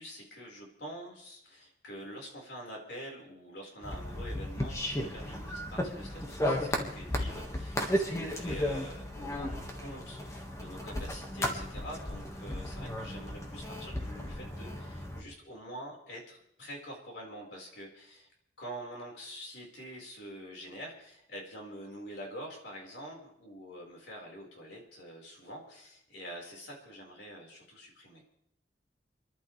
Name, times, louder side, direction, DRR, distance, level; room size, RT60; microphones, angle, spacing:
voice 1, 0.0-18.2 18.6-28.2, equal, 85° left, -1 dB, 4.7 m, -46 dB
sound 1, 3.8-15.2, left 1 dB, 15° left, 1.7 m, -35 dB
29.0 x 11.5 x 3.3 m, 0.76 s
head